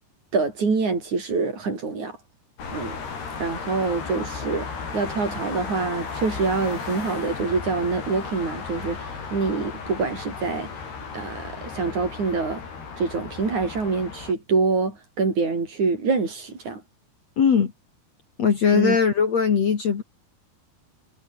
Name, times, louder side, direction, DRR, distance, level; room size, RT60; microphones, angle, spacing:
voice 1, 0.3-2.2 2.7-3.0 3.4-4.7 4.9-10.7 11.1-12.6 13.0-16.8 18.7-19.0, right 4 dB, 45° right, 6.3 m, -25 dB
sound 1, 2.6-14.3, left 5 dB, 65° left, 7.9 m, -35 dB
voice 2, 17.4-17.7 18.4-20.0, left 6 dB, 45° left, 3.0 m, -20 dB
omnidirectional pair, 4.9 m